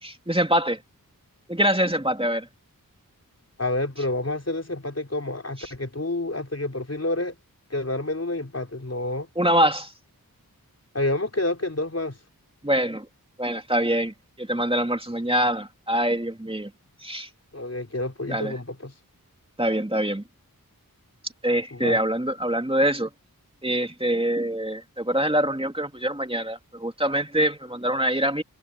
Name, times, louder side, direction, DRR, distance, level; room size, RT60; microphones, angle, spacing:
voice 1, 0.0-0.8 1.5-2.5 5.6-5.7 9.4-9.9 12.6-13.1 13.4-16.7 17.0-17.3 18.3-18.5 19.6-20.2 21.4-23.1 23.6-28.4, right 1 dB, 15° right, 2.5 m, -24 dB
voice 2, 3.6-7.3 7.7-9.3 10.9-12.2 17.5-18.9 21.7-22.0, left 2 dB, 45° left, 4.0 m, -28 dB
wide cardioid pair, 60°, 36 cm